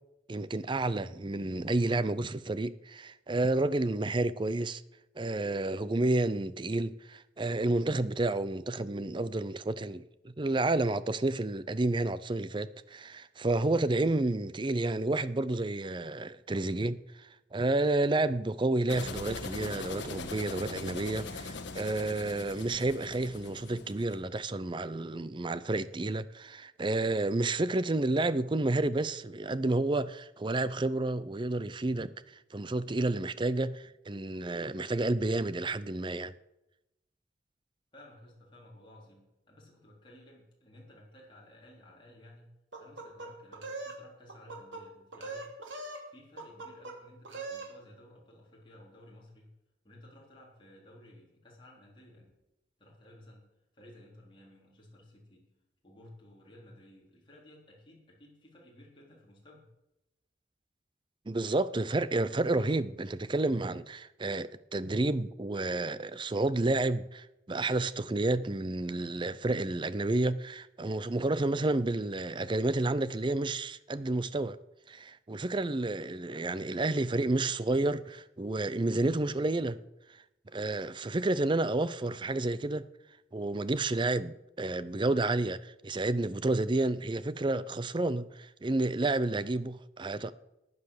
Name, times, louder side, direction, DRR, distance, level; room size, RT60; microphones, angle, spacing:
voice 1, 0.3-4.8 5.2-32.1 32.5-36.3 61.3-74.6 74.9-79.8 80.5-82.8 83.3-90.3, right 2 dB, 25° right, 0.5 m, -30 dB
sound 1, 18.9-24.2, left 3 dB, 75° left, 1.4 m, -41 dB
voice 2, 37.9-45.5 46.1-49.5 49.8-52.3 52.8-53.5 53.7-55.5 55.8-59.7, left 1 dB, 25° left, 4.0 m, -55 dB
sound 2, 42.7-44.0 44.3-44.8 45.1-46.0 46.4-47.0 47.2-47.7, right 3 dB, 90° right, 2.6 m, -41 dB
15.0 x 9.5 x 6.6 m
head